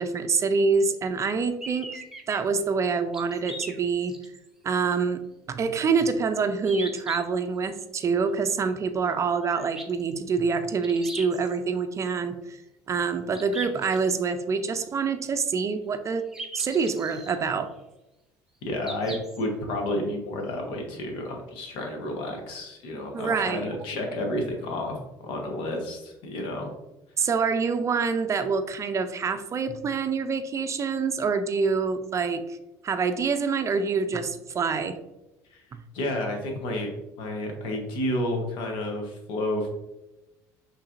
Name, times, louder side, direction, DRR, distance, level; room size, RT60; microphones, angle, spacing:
voice 1, 0.0-2.0 2.3-4.2 4.6-5.2 5.5-12.6 12.9-16.3 16.5-17.7 23.1-23.7 27.2-32.6 32.8-35.0, right 5 dB, 35° right, 8 dB, 0.5 m, -26 dB
sound 1, 1.6-2.4 3.1-4.5 4.9-5.0 6.6-7.2 9.5-10.1 10.8-11.6 13.3-14.2 16.3-17.4 18.8-19.4, right 1 dB, 5° right, 0.8 m, -39 dB
voice 2, 18.6-26.7 27.2-27.3 35.5-35.6 35.9-36.9 37.2-39.7, left 1 dB, 70° left, 2 dB, 1.1 m, -31 dB
5.6 x 3.2 x 2.6 m, 0.97 s
supercardioid pair, 85°, 9 cm